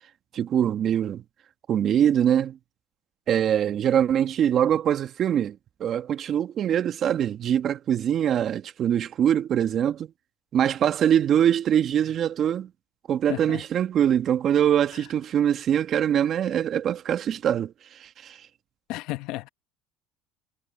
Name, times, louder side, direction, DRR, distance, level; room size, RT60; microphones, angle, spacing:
voice 1, 0.3-1.2 1.7-2.6 3.3-10.1 10.5-12.7 13.1-18.4, right 9 dB, 45° right, 1.7 m, -23 dB
voice 2, 13.3-13.6 18.9-19.5, left 18 dB, 70° left, 1.0 m, -32 dB
supercardioid pair, 95°, 0 cm